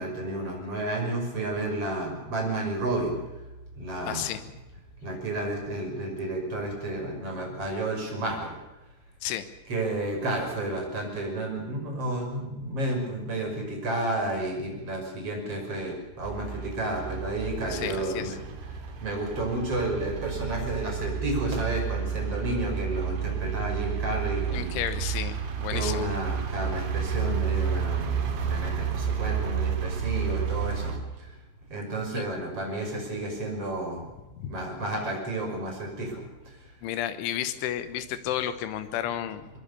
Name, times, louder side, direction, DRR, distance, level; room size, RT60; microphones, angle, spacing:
voice 1, 0.0-3.2 3.8-4.3 5.0-8.5 9.7-24.7 25.7-31.3 31.7-34.1 34.4-36.5, right 2 dB, 30° right, 1 dB, 6.6 m, -31 dB
voice 2, 4.0-4.5 9.2-9.5 17.7-18.4 24.5-26.1 32.1-32.3 34.4-34.6 36.8-39.5, left 11 dB, 85° left, 11 dB, 3.7 m, -32 dB
sound 1, 16.2-31.0, right 7 dB, 80° right, 5.0 m, -31 dB
22.5 x 22.5 x 6.9 m, 1.0 s
omnidirectional pair, 5.4 m